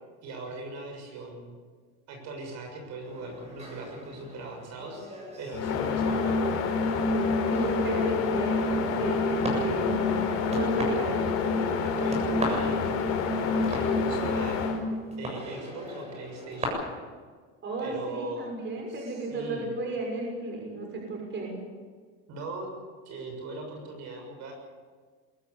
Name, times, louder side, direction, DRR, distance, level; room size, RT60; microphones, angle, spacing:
voice 1, 0.2-1.6 2.1-6.5 11.4-13.0 13.5-14.6 15.2-16.8 17.8-18.5 18.9-19.7 22.3-22.7 23.1-24.5, right 2 dB, 55° right, 3 dB, 6.9 m, -39 dB
sound 1, 3.0-16.6, equal, 20° right, 7.4 m, -40 dB
sound 2, 5.5-14.8, left 4 dB, 50° left, 4.9 m, -27 dB
voice 2, 7.5-11.3 17.6-21.5, right 2 dB, 35° right, 1 dB, 6.3 m, -33 dB
23.0 x 14.5 x 9.9 m, 1.5 s
cardioid pair, 140°, 33 cm